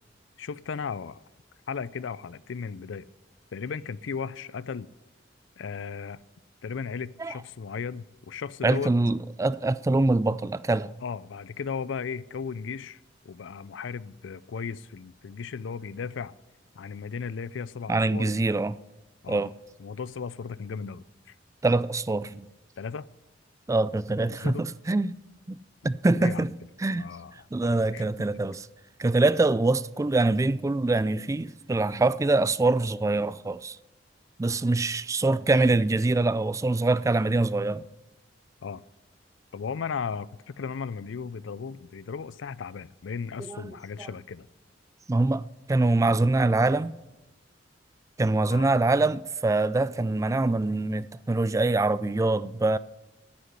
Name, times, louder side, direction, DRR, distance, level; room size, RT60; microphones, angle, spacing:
voice 1, 0.4-1.2 1.7-3.1 3.5-4.9 5.6-6.2 6.6-8.9 11.0-16.3 16.8-18.4 19.2-19.4 19.8-21.4 22.8-23.1 24.1-24.7 26.2-26.5 26.9-27.5 27.9-28.3 38.6-38.8 39.5-44.5 48.5-48.7, left 6 dB, 75° left, 0.4 m, -36 dB
voice 2, 8.6-10.9 17.9-18.8 19.3-19.5 21.6-22.5 23.7-25.2 25.5-25.6 25.8-26.5 26.8-27.1 27.5-28.7 29.0-33.8 34.4-37.8 43.4-43.7 44.0-44.1 45.1-45.4 45.7-46.9 48.2-52.8, right 2 dB, 15° right, 0.3 m, -24 dB
9.8 x 8.2 x 9.8 m
head